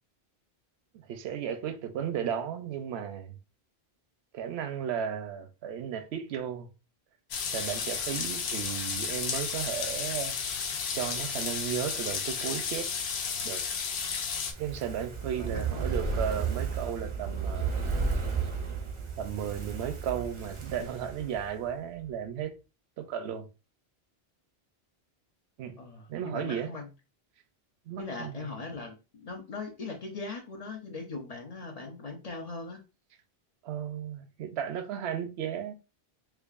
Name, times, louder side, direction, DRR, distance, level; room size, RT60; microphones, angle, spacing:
voice 1, 0.9-3.4 4.3-6.7 7.5-10.3 10.9-12.9 13.4-13.6 14.6-17.7 19.2-22.5 23.0-23.5 25.6-25.8 26.1-26.7 27.9-28.5 33.6-35.7, right 8 dB, 80° right, 0.8 m, -34 dB
sound 1, 7.3-14.5, left 6 dB, 80° left, 0.9 m, -33 dB
Fire, 14.4-21.7 22.0-22.1, right 5 dB, 40° right, 0.5 m, -33 dB
voice 2, 15.4-15.9 25.8-26.9 28.0-32.8, left 3 dB, 40° left, 0.8 m, -40 dB
4.6 x 2.4 x 2.4 m
omnidirectional pair, 1.1 m